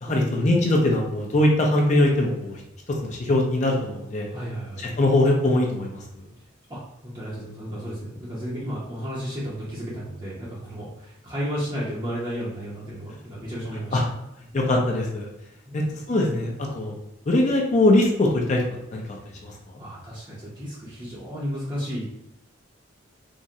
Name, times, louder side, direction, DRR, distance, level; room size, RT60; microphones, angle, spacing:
voice 1, 0.0-2.6 3.0-4.3 5.0-6.0 13.9-14.0 14.5-15.3 15.7-15.8 16.1-16.9 17.3-18.6 18.9-19.0 19.4-19.5, left 1 dB, 35° left, -1 dB, 0.4 m, -21 dB
voice 2, 4.3-4.9 6.7-14.1 15.6-16.0 19.1-19.2 19.8-22.1, equal, 25° right, -8 dB, 0.6 m, -33 dB
3.6 x 2.1 x 2.7 m, 0.85 s
head